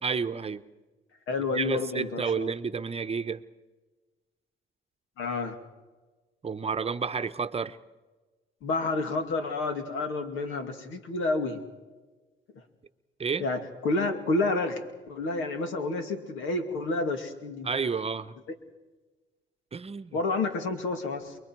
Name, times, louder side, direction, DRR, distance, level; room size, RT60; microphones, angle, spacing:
voice 1, 0.0-0.6 1.5-3.4 6.4-7.8 13.2-13.5 17.6-18.3 19.7-20.2, right 5 dB, 30° right, 10 dB, 0.9 m, -30 dB
voice 2, 1.3-2.5 5.2-5.6 8.6-11.6 13.4-14.8 15.1-17.7 20.1-21.4, left 3 dB, 90° left, 6 dB, 2.5 m, -29 dB
29.5 x 22.0 x 4.7 m, 1.3 s
cardioid pair, 90°, 20 cm